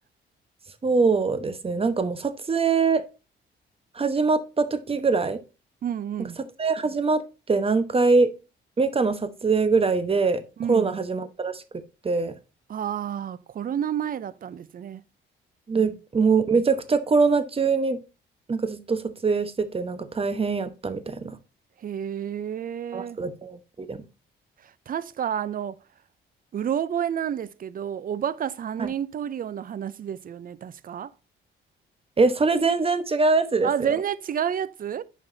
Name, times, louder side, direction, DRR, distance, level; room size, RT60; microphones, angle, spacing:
voice 1, 0.8-3.0 4.0-5.4 6.6-7.2 7.5-8.3 8.8-10.4 10.7-11.6 12.0-12.3 15.7-18.0 18.5-21.4 22.9-24.0 28.8-28.9 32.2-33.9, right 4 dB, 30° right, 1.0 m, -23 dB
voice 2, 5.8-6.4 10.6-11.0 12.7-15.0 15.8-16.0 21.8-23.2 24.6-25.8 26.5-31.1 33.6-35.0, right 9 dB, 45° right, 0.6 m, -30 dB
9.1 x 5.3 x 2.7 m
cardioid pair, 90°, 20 cm